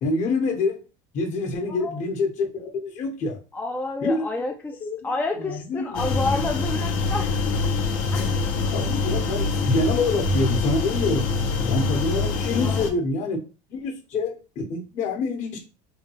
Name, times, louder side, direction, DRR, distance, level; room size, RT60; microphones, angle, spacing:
voice 1, 0.0-0.8 1.1-3.4 4.0-4.3 4.8-5.0 5.4-6.0 8.7-11.3 11.7-13.4 13.7-15.7, left 3 dB, 50° left, 3 dB, 1.1 m, -26 dB
voice 2, 1.7-2.0 3.5-4.8 5.0-7.6 8.1-8.3 11.6-11.7 12.6-12.9, left 3 dB, 10° left, 3 dB, 0.4 m, -30 dB
sound 1, 5.9-12.9, left 4 dB, 70° left, 0.9 m, -25 dB
3.6 x 2.3 x 3.1 m, 0.32 s
supercardioid pair, 120°, 16 cm